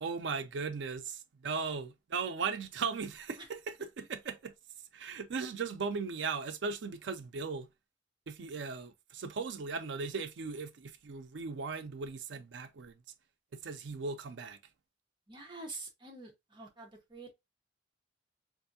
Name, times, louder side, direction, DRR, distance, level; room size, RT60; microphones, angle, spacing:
voice 1, 0.0-4.5 4.9-7.7 8.3-13.0 13.6-14.6, right 5 dB, 90° right, 0.5 m, -37 dB
voice 2, 15.3-17.3, right 2 dB, 25° right, 1.0 m, -46 dB
3.4 x 2.6 x 2.6 m
head